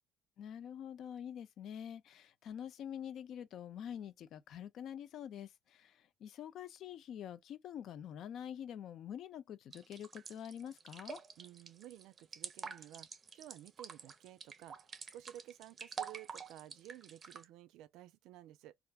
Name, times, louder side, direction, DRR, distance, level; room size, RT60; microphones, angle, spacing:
voice 1, 0.4-11.2, left 9 dB, 60° left, 0.4 m, -46 dB
sound 1, 9.7-17.4, right 6 dB, 35° right, 0.5 m, -47 dB
voice 2, 11.4-13.1 13.3-14.9 15.1-18.8, right 13 dB, 85° right, 0.4 m, -53 dB
3.4 x 2.4 x 2.3 m
cardioid pair, 125°, 0 cm